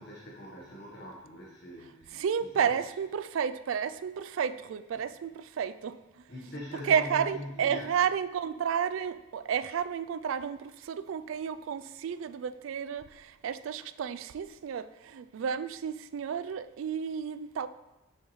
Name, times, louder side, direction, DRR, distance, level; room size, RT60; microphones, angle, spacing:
voice 1, 0.0-2.1 2.5-2.7 4.9-5.0 6.3-7.9, left 1 dB, 55° left, -4 dB, 1.2 m, -42 dB
voice 2, 2.1-6.0 6.8-17.7, right 7 dB, 70° right, 13 dB, 0.3 m, -31 dB
7.0 x 7.0 x 3.1 m, 1.0 s
head